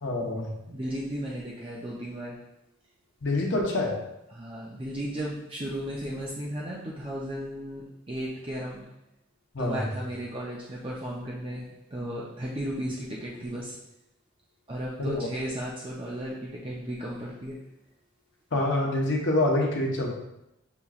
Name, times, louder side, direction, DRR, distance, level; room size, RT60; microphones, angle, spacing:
voice 1, 0.0-0.5 3.2-3.9 9.5-9.9 15.0-15.3 18.5-20.1, left 2 dB, 60° left, -1 dB, 0.9 m, -26 dB
voice 2, 0.7-2.4 4.3-8.9 9.6-13.8 14.7-17.7, right 1 dB, 25° right, -5 dB, 0.5 m, -35 dB
6.8 x 2.9 x 2.4 m, 0.86 s
head